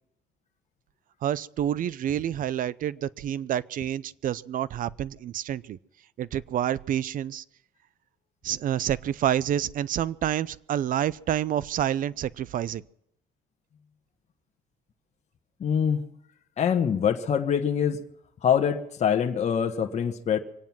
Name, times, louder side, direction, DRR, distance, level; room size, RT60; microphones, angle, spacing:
voice 1, 1.2-5.8 6.2-7.4 8.4-12.8, right 10 dB, 55° right, 20 dB, 0.6 m, -28 dB
voice 2, 15.6-16.1 16.6-18.0 18.4-20.4, left 8 dB, 40° left, 4 dB, 1.3 m, -24 dB
24.5 x 9.2 x 6.0 m, 0.75 s
cardioid pair, 110°, 17 cm